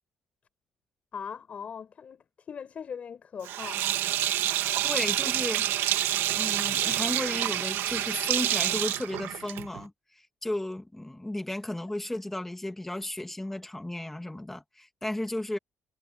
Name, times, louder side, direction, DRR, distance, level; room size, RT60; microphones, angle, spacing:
voice 1, 1.1-3.8, left 7 dB, 35° left, 6.5 m, -40 dB
Sink (filling or washing), 3.4-9.8, right 12 dB, 80° right, 2.3 m, -28 dB
voice 2, 4.8-5.7 6.3-9.9 10.4-15.6, left 1 dB, 5° left, 2.1 m, -34 dB
cardioid pair, 160°, 4 cm